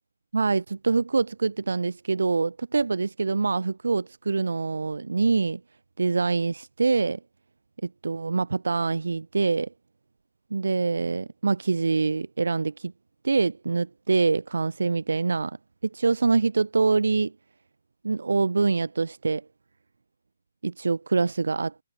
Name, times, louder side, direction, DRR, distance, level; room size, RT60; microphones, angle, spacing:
voice 1, 0.3-5.6 6.0-7.2 8.0-9.7 10.5-12.9 13.2-15.6 15.9-17.3 18.0-19.4 20.6-21.7, right 4 dB, 80° right, 0.7 m, -25 dB
hypercardioid pair, 155°, 0 cm